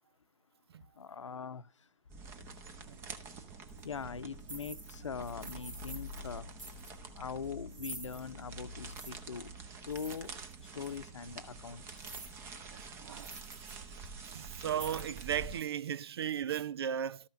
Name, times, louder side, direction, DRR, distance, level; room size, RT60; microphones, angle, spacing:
voice 1, 1.0-1.6 3.8-6.5 7.2-9.5 9.9-10.3 10.7-12.0, left 6 dB, 75° left, 0.9 m, -42 dB
sound 1, 2.1-15.6, right 2 dB, 15° right, 0.9 m, -47 dB
sound 2, 3.7-3.8 4.4-5.0 5.2-6.3 6.6-6.9 7.7-8.2 8.9-9.1 9.9-10.5 10.8-11.0 11.9-12.4 12.8-12.9 13.2-13.8 14.1-14.2 14.7-15.3, right 2 dB, 85° right, 2.5 m, -48 dB
voice 2, 12.7-13.3 14.3-17.2, right 9 dB, 55° right, 0.5 m, -36 dB
13.0 x 5.8 x 5.7 m
hypercardioid pair, 145°, 16 cm